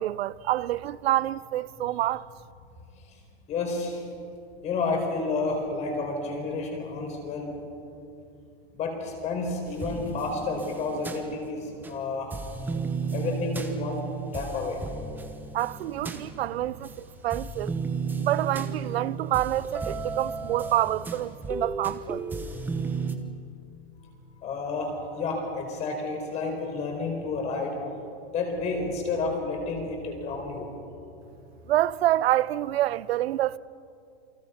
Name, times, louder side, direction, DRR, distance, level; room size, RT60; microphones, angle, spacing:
voice 1, 0.0-2.2 15.5-17.7 18.2-22.2 31.7-33.6, right 14 dB, 90° right, 0.7 m, -27 dB
voice 2, 3.5-4.0 4.6-7.5 8.7-12.3 13.1-14.0 14.3-14.8 24.4-27.8 28.3-30.7, left 3 dB, 25° left, 4.5 m, -30 dB
sound 1, 9.7-12.0 12.3-17.0 17.3-23.2, right 4 dB, 5° right, 1.0 m, -34 dB
29.0 x 23.5 x 5.8 m
supercardioid pair, 170°, 30 cm